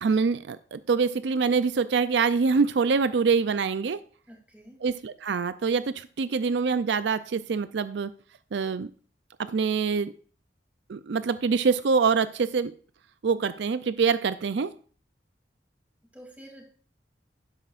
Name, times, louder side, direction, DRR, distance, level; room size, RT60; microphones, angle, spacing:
voice 1, 0.0-4.0 4.8-8.1 8.5-8.9 9.4-10.1 10.9-12.7 13.2-14.7, right 5 dB, 75° right, 14 dB, 0.4 m, -25 dB
voice 2, 4.3-4.8 16.1-16.6, equal, 10° right, 0 dB, 2.8 m, -48 dB
12.5 x 10.5 x 2.5 m, 0.43 s
head